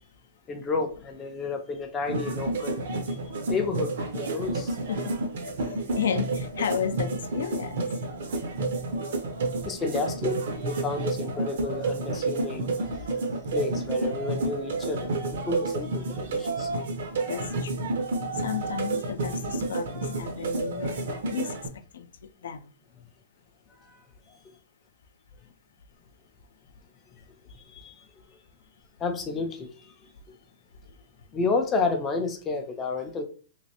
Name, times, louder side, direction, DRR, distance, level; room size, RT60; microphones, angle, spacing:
voice 1, 0.5-2.8 3.1-3.2 3.5-4.8 9.6-12.7 13.5-15.1 15.5-16.7 20.1-20.2 23.8-24.4 27.5-28.1 29.0-29.9 31.3-33.2, left 4 dB, 15° left, 0.4 m, -31 dB
sound 1, 2.1-21.7, right 2 dB, 65° right, 0.7 m, -30 dB
voice 2, 4.9-5.3 5.6-7.9 17.3-17.9 18.3-22.7 30.8-31.0, left 8 dB, 85° left, 0.4 m, -33 dB
3.1 x 3.0 x 2.8 m
hypercardioid pair, 170°, 0 cm